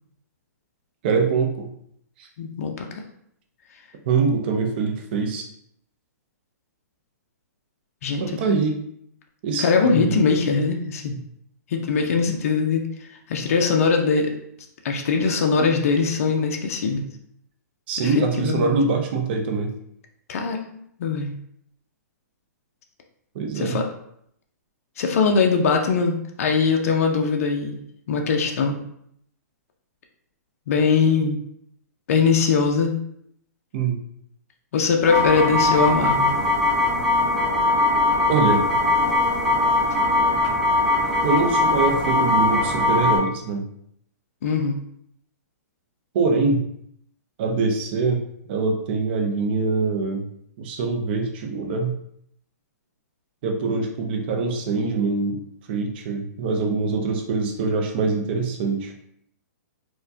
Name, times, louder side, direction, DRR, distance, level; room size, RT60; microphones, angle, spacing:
voice 1, 1.0-1.7 2.2-2.3 4.1-5.5 8.2-8.8 9.4-10.1 17.9-19.7 23.3-23.8 33.7-34.0 38.3-38.6 41.2-43.7 46.1-46.6 47.4-48.2 48.5-50.3 50.6-52.0 53.4-55.4 55.7-58.9, right 4 dB, 35° right, 3 dB, 0.5 m, -23 dB
voice 2, 2.4-2.9 8.0-8.2 9.6-11.2 11.7-12.8 13.3-14.3 14.8-17.1 18.0-18.7 20.3-21.4 23.6-23.8 25.0-27.8 28.1-28.8 30.7-31.4 32.1-33.0 34.7-36.3 44.4-44.8, left 5 dB, 55° left, 2 dB, 0.5 m, -21 dB
The Dark Evil Code, 35.1-43.2, left 2 dB, 10° right, 0.9 m, -20 dB
4.4 x 2.2 x 2.6 m, 0.71 s
hypercardioid pair, 160°, 9 cm